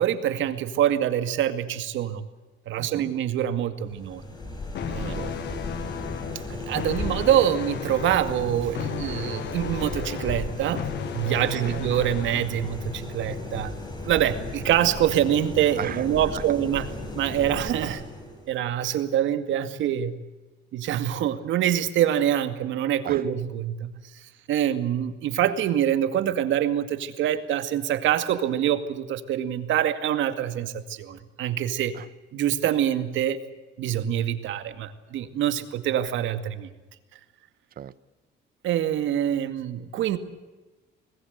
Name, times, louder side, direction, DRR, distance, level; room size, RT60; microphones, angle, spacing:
voice 1, 0.0-2.3 2.7-4.2 4.9-5.2 6.5-10.9 11.1-13.7 14.0-16.9 17.1-18.0 18.5-20.1 20.7-23.9 24.5-31.9 32.3-33.4 33.8-36.7 38.6-40.2, right 11 dB, 85° right, 10 dB, 2.2 m, -25 dB
voice 2, 2.8-3.1 5.0-6.0 11.6-11.8 15.8-16.1 16.3-16.4 23.0-23.2 31.9-32.1 37.8-37.9, right 10 dB, 50° right, 17 dB, 1.0 m, -38 dB
sound 1, 3.8-18.5, left 2 dB, 20° left, 6.9 m, -35 dB
sound 2, 4.7-12.7, left 10 dB, 65° left, 1.3 m, -36 dB
25.5 x 19.5 x 8.2 m, 1.2 s
cardioid pair, 135°, 19 cm